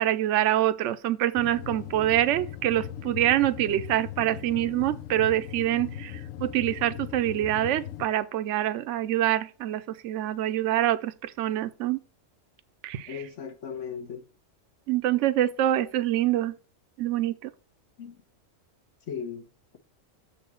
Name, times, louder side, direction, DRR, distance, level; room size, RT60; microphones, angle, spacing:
voice 1, 0.0-12.0 12.8-13.2 14.9-16.5 17.0-17.5, right 13 dB, 70° right, 0.9 m, -25 dB
sound 1, 1.4-8.1, left 10 dB, 85° left, 1.0 m, -39 dB
voice 2, 13.1-14.2 18.0-18.1 19.1-19.4, left 7 dB, 70° left, 1.5 m, -36 dB
6.9 x 4.3 x 6.0 m
omnidirectional pair, 1.3 m